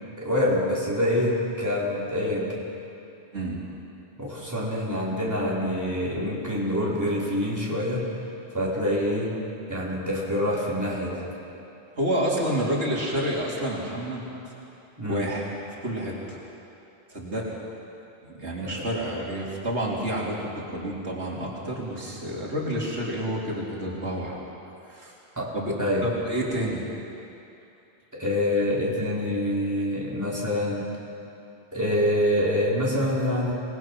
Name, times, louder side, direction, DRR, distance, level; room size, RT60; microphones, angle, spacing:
voice 1, 0.2-2.5 4.2-8.1 8.5-9.4 9.7-11.3 15.0-15.3 18.6-18.7 25.4-26.1 28.1-30.9 31.7-33.5, left 1 dB, 15° right, -6 dB, 4.2 m, -26 dB
voice 2, 12.0-14.2 15.1-15.5 15.8-16.4 17.1-17.6 18.2-24.4 24.9-25.1 25.5-25.7 26.0-26.8, right 1 dB, 85° right, -4 dB, 3.5 m, -29 dB
26.0 x 19.5 x 6.1 m, 2.8 s
omnidirectional pair, 1.1 m